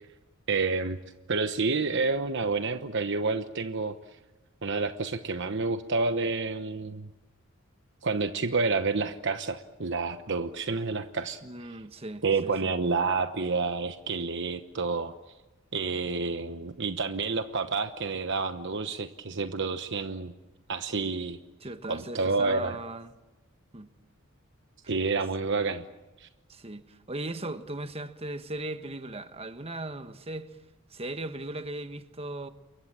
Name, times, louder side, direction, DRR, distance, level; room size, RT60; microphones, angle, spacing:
voice 1, 0.5-1.0 1.3-4.0 4.6-7.1 8.0-11.4 12.2-15.1 15.7-20.3 20.7-21.4 21.9-22.8 24.9-25.8 26.2-26.3, right 4 dB, 60° right, 1.0 m, -29 dB
voice 2, 11.4-12.7 21.6-23.1 23.7-23.9 26.5-30.5 30.9-32.5, right 2 dB, 30° right, 1.3 m, -38 dB
29.0 x 23.0 x 7.5 m
head